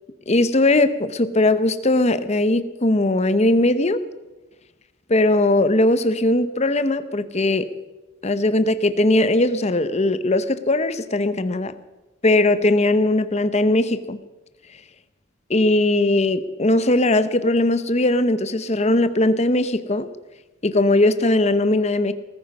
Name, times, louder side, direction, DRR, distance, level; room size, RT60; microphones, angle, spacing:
voice 1, 0.3-4.0 5.1-7.7 8.2-11.7 12.2-14.2 15.5-20.1 20.6-22.1, left 2 dB, 30° left, 12 dB, 0.8 m, -19 dB
18.5 x 14.5 x 5.4 m, 1.1 s
head